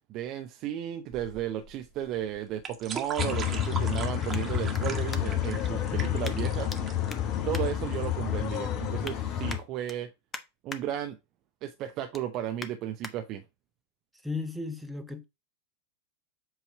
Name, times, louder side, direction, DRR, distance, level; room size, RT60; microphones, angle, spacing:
voice 1, 0.1-6.7 7.4-10.1 10.6-11.2 11.6-13.4, right 11 dB, 45° right, 0.7 m, -34 dB
sound 1, 1.1-8.1, right 6 dB, 25° right, 1.4 m, -40 dB
sound 2, 3.2-9.6, left 10 dB, 45° left, 1.2 m, -29 dB
sound 3, 4.3-5.6 6.2-6.8 7.1-8.4 8.8-9.2 9.5-10.8 11.2-11.5 11.8-13.1 13.7-13.8, left 3 dB, 20° left, 1.0 m, -44 dB
voice 2, 14.2-15.2, left 3 dB, ahead, 1.1 m, -36 dB
7.9 x 3.1 x 4.8 m
figure-of-eight pair, 90°, 0 cm